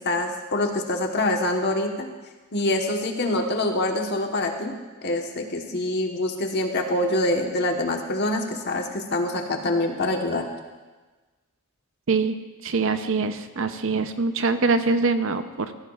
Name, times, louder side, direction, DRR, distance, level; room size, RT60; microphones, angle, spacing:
voice 1, 0.0-2.1 2.5-4.7 5.0-10.4, left 1 dB, 50° left, 3 dB, 1.2 m, -25 dB
voice 2, 12.1-12.4 12.6-15.7, right 4 dB, 65° right, 9 dB, 0.6 m, -24 dB
16.5 x 14.5 x 2.4 m, 1.3 s
head